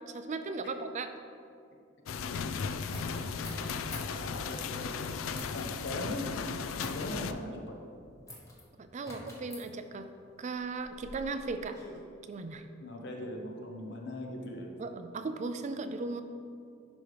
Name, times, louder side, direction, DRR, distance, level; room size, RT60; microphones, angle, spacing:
voice 1, 0.1-1.1 8.8-10.1 10.4-11.8 12.3-12.7 14.8-16.2, right 3 dB, 35° right, 8 dB, 0.3 m, -37 dB
sound 1, 2.1-7.3, left 5 dB, 80° left, 0.4 m, -36 dB
sound 2, 2.9-4.2 5.3-5.7 6.8-7.2 8.3-8.6 9.0-9.7 10.6-12.0, left 1 dB, 15° left, 1.0 m, -46 dB
voice 2, 3.9-5.1 5.5-6.3 6.8-7.8 12.8-14.7, left 1 dB, 60° left, 2 dB, 1.0 m, -40 dB
11.0 x 5.2 x 3.4 m, 2.5 s
head